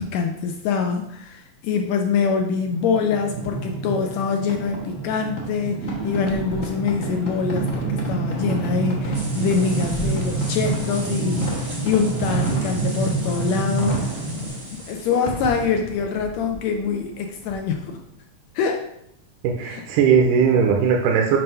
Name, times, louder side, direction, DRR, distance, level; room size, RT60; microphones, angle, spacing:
voice 1, 0.0-18.0 18.5-18.9 19.7-19.8, left 5 dB, 80° left, 3 dB, 1.6 m, -25 dB
sound 1, 2.6-14.5, right 3 dB, ahead, 0.5 m, -27 dB
Fireworks, 4.4-18.0, equal, 60° left, 0.7 m, -35 dB
sound 2, 9.1-15.7, right 1 dB, 40° right, 0.7 m, -39 dB
voice 2, 19.4-21.4, right 6 dB, 85° right, 0 dB, 2.1 m, -18 dB
7.5 x 2.6 x 5.5 m, 0.76 s
omnidirectional pair, 3.6 m